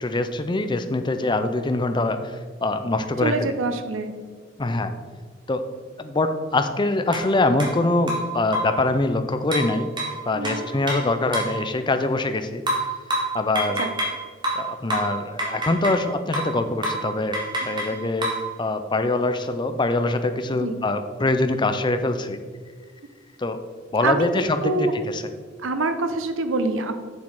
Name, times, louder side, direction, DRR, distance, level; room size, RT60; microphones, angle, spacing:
voice 1, 0.0-3.5 4.6-4.9 5.5-5.6 6.0-9.9 10.3-12.6 13.3-13.8 14.5-17.4 17.6-18.3 18.6-22.4 23.4-23.6 23.9-24.7 25.1-25.2, left 2 dB, 25° left, 8 dB, 0.5 m, -24 dB
voice 2, 3.2-4.1 10.3-10.7 13.8-13.9 20.6-20.8 24.0-24.9 25.6-26.9, right 3 dB, 80° right, 9 dB, 0.8 m, -26 dB
sound 1, 7.1-7.3 7.6-7.7 8.1-8.8 9.5-11.6 12.7-14.2 14.4-16.1 16.3-16.6 16.8-17.1 17.3-18.5, right 1 dB, 25° right, 1.9 m, -27 dB
7.1 x 6.4 x 4.8 m, 1.5 s
head